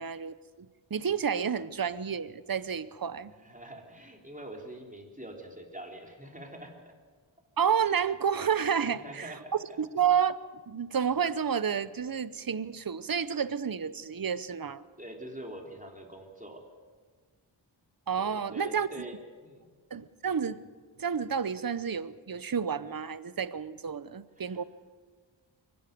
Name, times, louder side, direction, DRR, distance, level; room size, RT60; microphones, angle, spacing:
voice 1, 0.0-3.3 7.6-10.4 10.7-14.8 18.1-19.1 19.9-20.6 21.0-24.6, right 7 dB, 50° right, 16 dB, 0.8 m, -30 dB
voice 2, 3.3-6.8 8.9-9.8 15.0-16.7 18.2-19.7 24.4-24.6, right 1 dB, 15° right, 1 dB, 3.5 m, -45 dB
23.5 x 12.0 x 9.3 m, 1.5 s
wide cardioid pair, 40°, 46 cm